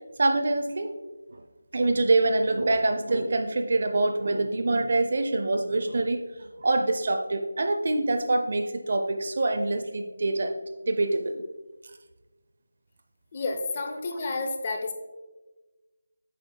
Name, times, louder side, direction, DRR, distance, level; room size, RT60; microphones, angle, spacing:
voice 1, 0.2-1.0 1.3-1.4 1.7-6.2 6.6-10.5 10.9-11.4, right 2 dB, 40° right, 6 dB, 0.5 m, -25 dB
voice 2, 13.3-14.9, left 3 dB, 25° left, 4 dB, 0.6 m, -30 dB
8.3 x 6.6 x 2.2 m, 1.2 s
figure-of-eight pair, 175°, 0 cm